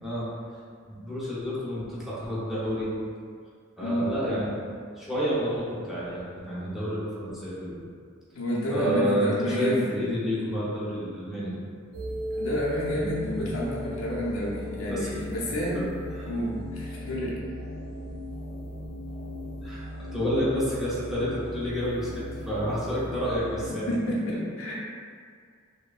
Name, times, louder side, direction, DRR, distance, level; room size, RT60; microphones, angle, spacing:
voice 1, 0.9-2.9 3.8-4.5 5.0-7.8 8.7-11.5 12.9-13.1 14.9-15.1 15.7-15.9 16.2-16.3 19.6-19.8 20.1-23.9, equal, ahead, -10 dB, 0.6 m, -29 dB
voice 2, 3.8-4.1 8.3-9.9 12.4-15.8 16.2-17.4 23.9-24.7, equal, 75° left, -6 dB, 0.6 m, -29 dB
sound 1, 11.9-23.7, left 1 dB, 75° right, 0.4 m, -37 dB
3.1 x 2.1 x 2.3 m, 2.1 s
head